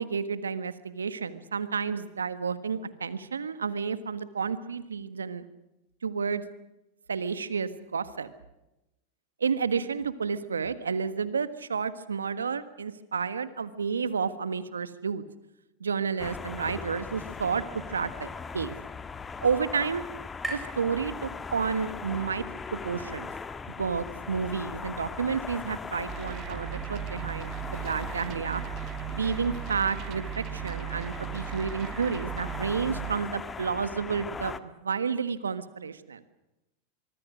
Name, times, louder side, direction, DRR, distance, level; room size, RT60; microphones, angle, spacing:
voice 1, 0.0-5.5 6.0-6.4 7.1-8.3 9.4-15.2 15.8-17.6 17.9-18.7 19.4-20.0 20.5-22.4 22.7-23.3 23.7-28.6 29.1-36.2, right 6 dB, 85° right, 13 dB, 1.5 m, -31 dB
sound 1, 16.2-34.6, left 5 dB, 20° left, 1.5 m, -39 dB
sound 2, 18.0-21.9, right 1 dB, 5° right, 7.6 m, -44 dB
sound 3, 26.1-33.2, right 18 dB, 45° right, 1.2 m, -37 dB
25.0 x 23.5 x 6.3 m, 0.93 s
hypercardioid pair, 90°, 0 cm